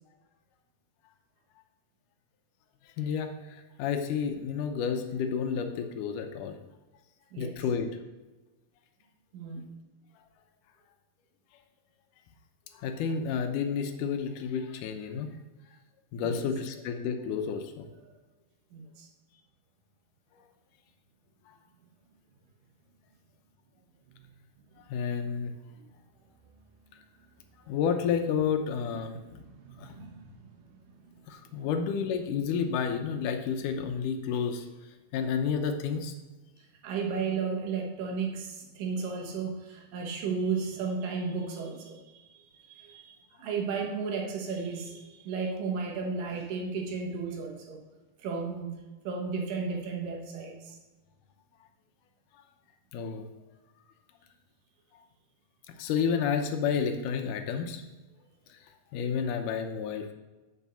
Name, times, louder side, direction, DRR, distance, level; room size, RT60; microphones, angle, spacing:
voice 1, 3.0-6.6 7.4-7.9 12.8-15.3 16.1-17.8 24.9-25.5 27.7-29.4 29.8-29.9 31.3-34.6 35.1-36.1 52.9-53.2 55.8-57.8 58.9-60.1, left 6 dB, 75° left, 6 dB, 2.2 m, -30 dB
voice 2, 9.3-9.7 16.2-16.5 18.0-18.1 18.7-19.1 24.1-24.3 25.8-25.9 29.1-29.2 29.5-30.3 31.6-31.7 36.8-42.2 42.6-47.8 48.2-48.8 49.0-50.8, right 5 dB, 80° right, 0 dB, 2.9 m, -34 dB
7.4 x 4.5 x 6.9 m, 1.2 s
omnidirectional pair, 3.9 m